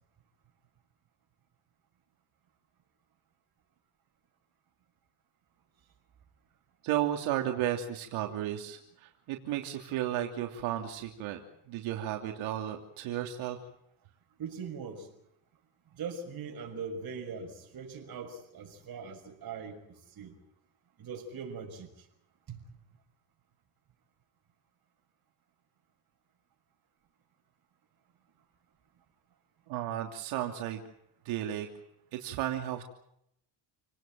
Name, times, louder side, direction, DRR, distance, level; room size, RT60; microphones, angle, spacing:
voice 1, 6.8-11.4 11.7-13.6 29.7-30.8 31.2-31.7 32.1-32.8, right 12 dB, 85° right, 3 dB, 3.1 m, -33 dB
voice 2, 14.4-15.1 15.9-20.4 21.0-22.1 22.5-22.6, right 5 dB, 50° right, 2 dB, 6.3 m, -41 dB
29.0 x 19.0 x 7.6 m, 0.76 s
cardioid pair, 125°, 47 cm